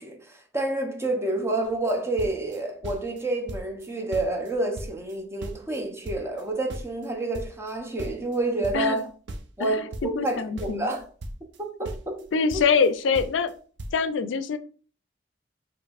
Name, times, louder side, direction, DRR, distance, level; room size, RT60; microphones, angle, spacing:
voice 1, 0.0-9.1 9.6-11.1 11.6-12.3 12.5-12.6, right 2 dB, 15° right, 0.7 m, -29 dB
sound 1, 1.6-1.9 2.2-3.2 3.5-5.8 6.0-9.0 9.3-11.6 11.8-12.9 13.1-13.5 13.8-14.0, right 1 dB, 70° right, 0.6 m, -38 dB
voice 2, 9.6-10.9 12.3-13.5 13.9-14.6, left 5 dB, 90° left, 0.4 m, -24 dB
5.1 x 3.0 x 2.4 m
head